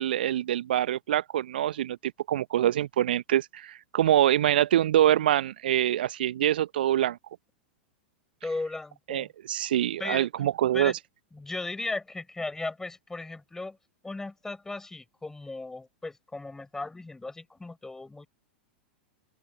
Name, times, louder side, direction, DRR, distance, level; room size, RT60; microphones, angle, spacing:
voice 1, 0.0-7.2 9.1-10.9, right 12 dB, 60° right, 1.1 m, -25 dB
voice 2, 8.4-9.3 10.0-10.3 10.7-10.9 11.3-13.8 14.0-18.3, left 2 dB, 10° left, 6.8 m, -36 dB
open air
figure-of-eight pair, 95°, 6 cm